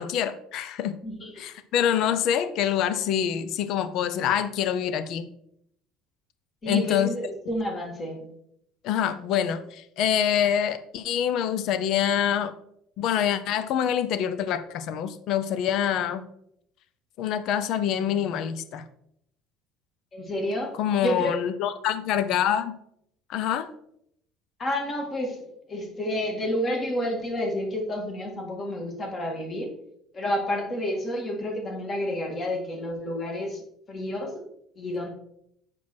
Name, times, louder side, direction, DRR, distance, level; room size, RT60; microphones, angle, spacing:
voice 1, 0.0-1.0 1.4-5.3 6.7-7.1 8.8-12.5 13.0-16.2 17.2-18.8 20.8-22.7 23.3-23.7, left 9 dB, 50° left, 12 dB, 0.6 m, -26 dB
voice 2, 1.0-1.4 6.6-8.3 20.1-21.3 24.6-29.7 30.1-33.6 33.9-34.4 34.8-35.1, left 1 dB, 25° left, 2 dB, 1.8 m, -30 dB
7.6 x 6.1 x 4.4 m, 0.73 s
cardioid pair, 165°, 0 cm